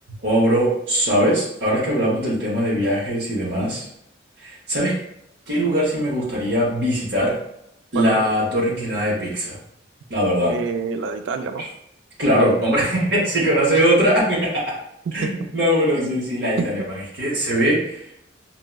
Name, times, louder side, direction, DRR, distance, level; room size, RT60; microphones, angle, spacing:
voice 1, 0.2-3.9 4.4-4.9 5.5-7.4 7.9-9.6 10.1-10.5 11.6-11.7 12.2-14.8 15.1-18.0, equal, 60° right, -6 dB, 0.8 m, -21 dB
voice 2, 10.5-11.6 15.1-15.3 15.9-16.1 16.6-16.9, right 4 dB, 80° right, 6 dB, 0.3 m, -27 dB
4.4 x 2.0 x 2.2 m, 0.78 s
head